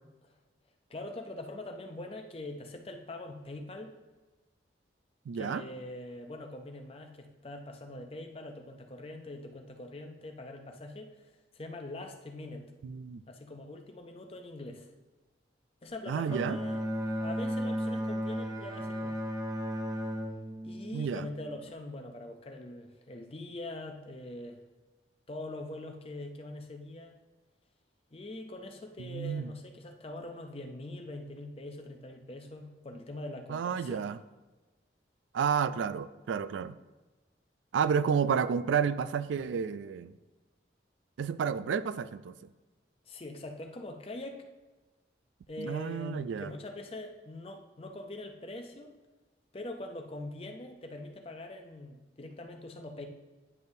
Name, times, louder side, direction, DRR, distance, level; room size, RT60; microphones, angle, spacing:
voice 1, 0.9-3.9 5.3-12.7 13.3-14.9 15.8-16.8 17.2-19.2 20.6-24.6 25.3-27.2 28.1-34.1 43.0-44.5 45.5-49.0 49.5-53.1, left 2 dB, 30° left, 4 dB, 0.6 m, -43 dB
voice 2, 5.3-5.6 12.8-13.2 16.1-16.6 20.9-21.3 29.0-29.5 33.5-34.2 35.3-36.8 37.7-40.1 41.2-42.3 45.6-46.5, right 7 dB, 85° right, 14 dB, 0.3 m, -31 dB
Bowed string instrument, 16.3-21.7, equal, 20° right, 0.6 m, -35 dB
9.5 x 5.3 x 2.7 m, 1.2 s
head